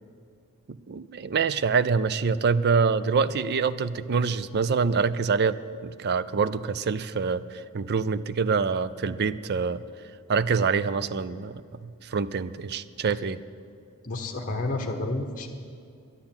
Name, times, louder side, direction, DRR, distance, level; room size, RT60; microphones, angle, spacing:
voice 1, 0.9-9.8 10.3-13.4, right 5 dB, 45° right, 14 dB, 0.4 m, -25 dB
voice 2, 14.0-15.5, left 2 dB, 35° left, 3 dB, 1.1 m, -30 dB
11.5 x 9.8 x 8.8 m, 2.4 s
head